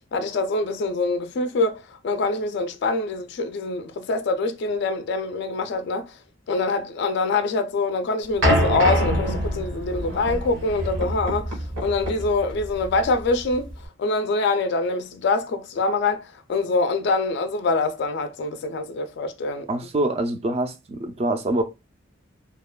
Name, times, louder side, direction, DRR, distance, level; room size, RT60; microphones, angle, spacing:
voice 1, 0.1-6.1 6.5-13.7 14.0-19.7, left 3 dB, 55° left, 0.3 m, -25 dB
sound 1, 8.4-13.8, equal, 85° right, 1.1 m, -25 dB
voice 2, 19.7-21.6, right 2 dB, 30° right, 0.3 m, -25 dB
2.8 x 2.2 x 2.2 m
head